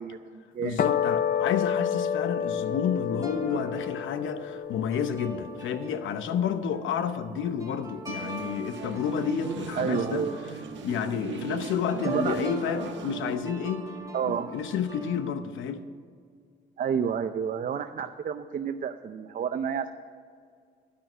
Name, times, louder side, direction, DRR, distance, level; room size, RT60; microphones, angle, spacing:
voice 1, 0.0-0.8 9.7-10.4 12.1-12.4 14.1-14.5 16.8-19.9, right 7 dB, 45° right, 9 dB, 0.6 m, -30 dB
voice 2, 0.6-10.3 10.8-13.9 14.2-15.8, left 7 dB, 75° left, 11 dB, 0.8 m, -30 dB
sound 1, 0.8-7.3, left 8 dB, 45° left, 0.6 m, -30 dB
sound 2, 2.7-15.3, right 3 dB, 15° right, 2.8 m, -42 dB
sound 3, 8.1-13.4, right 6 dB, 70° right, 1.1 m, -39 dB
11.5 x 6.1 x 9.1 m, 2.1 s
cardioid pair, 90°, 20 cm